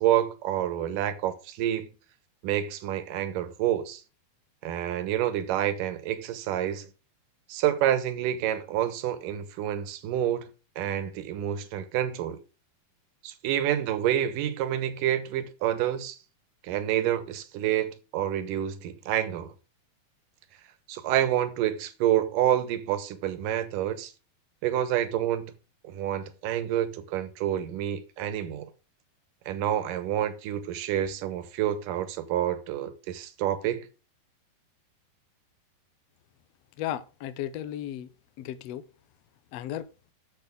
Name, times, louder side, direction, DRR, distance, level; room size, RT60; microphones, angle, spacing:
voice 1, 0.0-1.9 2.4-4.0 4.6-6.9 7.5-10.5 10.8-12.4 13.2-16.2 16.6-19.5 20.9-24.1 24.6-25.5 25.8-28.7 29.5-33.9, right 11 dB, 70° right, 2.6 m, -28 dB
voice 2, 36.8-38.1 38.4-38.8 39.5-39.9, left 12 dB, 90° left, 1.4 m, -34 dB
10.5 x 7.7 x 3.6 m
omnidirectional pair, 4.3 m